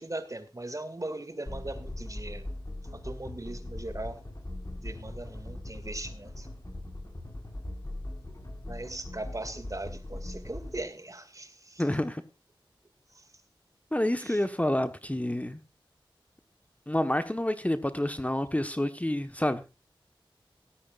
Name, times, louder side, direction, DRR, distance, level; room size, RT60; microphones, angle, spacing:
voice 1, 0.0-2.5 2.8-4.2 4.8-6.5 8.7-11.9 13.1-13.3 14.2-14.4, right 2 dB, 40° right, 2.1 m, -39 dB
sound 1, 1.5-10.8, left 1 dB, 40° left, 5.0 m, -40 dB
voice 2, 11.8-12.2 13.9-15.6 16.9-19.7, left 1 dB, 15° left, 1.1 m, -28 dB
17.0 x 13.0 x 2.4 m
wide cardioid pair, 55°, 9 cm